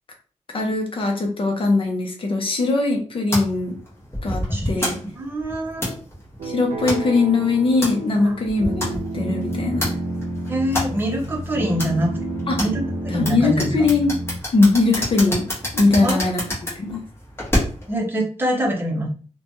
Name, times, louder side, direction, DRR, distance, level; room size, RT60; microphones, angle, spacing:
voice 1, 0.5-3.7 4.2-5.0 6.4-9.9 12.5-12.6 13.1-14.2 14.5-15.4 15.7-16.4 16.7-17.0, left 3 dB, 45° left, 2 dB, 0.6 m, -20 dB
sound 1, 3.3-18.0, left 1 dB, 20° left, 1.2 m, -29 dB
voice 2, 4.5-4.9 5.1-6.0 8.2-8.3 10.5-12.1 12.6-13.7 16.0-16.3 17.9-19.1, right 1 dB, 15° right, -2 dB, 0.7 m, -25 dB
sound 2, 6.4-14.4, right 1 dB, 70° right, 0.6 m, -30 dB
3.0 x 2.2 x 2.6 m, 0.41 s
wide cardioid pair, 130°, 12 cm